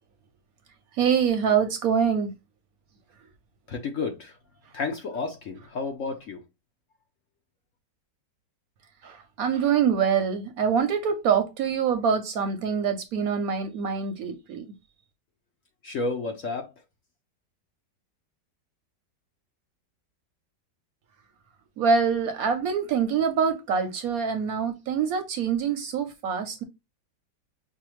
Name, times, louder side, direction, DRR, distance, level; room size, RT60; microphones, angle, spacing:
voice 1, 0.9-2.3 3.2-3.3 9.0-14.7 21.8-26.6, right 6 dB, 65° right, 0.9 m, -25 dB
voice 2, 3.7-4.4 4.7-6.4 15.8-16.7, left 4 dB, 60° left, 0.9 m, -31 dB
5.6 x 2.2 x 3.0 m
omnidirectional pair, 1.9 m